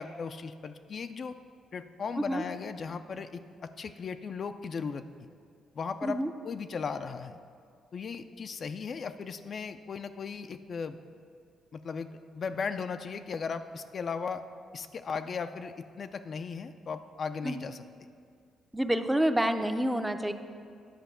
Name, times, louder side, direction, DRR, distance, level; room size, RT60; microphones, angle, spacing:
voice 1, 0.0-1.3 1.7-5.3 5.7-7.4 7.9-11.0 11.7-12.1 12.3-14.4 14.7-17.8, left 5 dB, 50° left, 9 dB, 0.4 m, -37 dB
voice 2, 18.7-20.3, right 1 dB, 10° right, 7 dB, 0.5 m, -28 dB
10.0 x 5.2 x 6.8 m, 2.2 s
cardioid pair, 90°, 0 cm